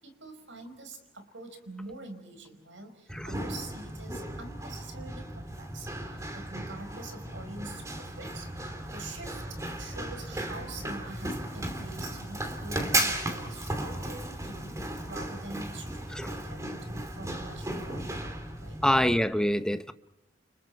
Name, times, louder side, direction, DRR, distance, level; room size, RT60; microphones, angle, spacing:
voice 1, 0.0-18.2 18.6-18.8, right 2 dB, 80° right, 5.2 m, -45 dB
Run, 3.1-19.1, right 1 dB, 15° right, 2.9 m, -35 dB
voice 2, 18.8-19.9, left 1 dB, 5° left, 0.8 m, -25 dB
29.5 x 29.5 x 4.6 m
head